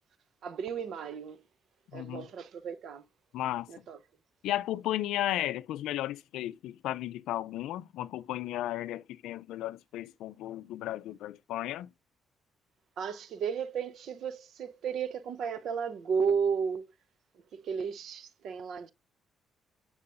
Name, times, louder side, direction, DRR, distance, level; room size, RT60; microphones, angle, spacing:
voice 1, 0.4-1.4 1.9-3.0 3.7-4.0 13.0-16.9 17.3-18.9, right 6 dB, 70° right, 0.7 m, -33 dB
voice 2, 1.9-2.3 3.3-3.7 4.4-11.9, left 13 dB, 90° left, 0.4 m, -34 dB
8.5 x 4.7 x 2.5 m
cardioid pair, 90°, 0 cm